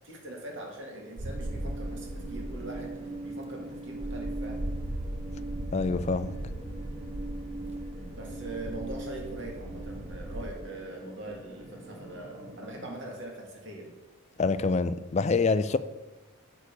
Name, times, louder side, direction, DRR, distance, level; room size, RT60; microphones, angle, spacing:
voice 1, 0.0-4.7 8.2-14.0, right 2 dB, 55° right, 2.0 m, -42 dB
sound 1, 1.2-10.5, right 1 dB, 30° right, 0.5 m, -38 dB
sound 2, 1.3-12.9, right 2 dB, 15° right, 1.4 m, -42 dB
voice 2, 5.7-6.4 14.4-15.8, left 4 dB, 30° left, 0.3 m, -26 dB
8.2 x 6.4 x 5.2 m
head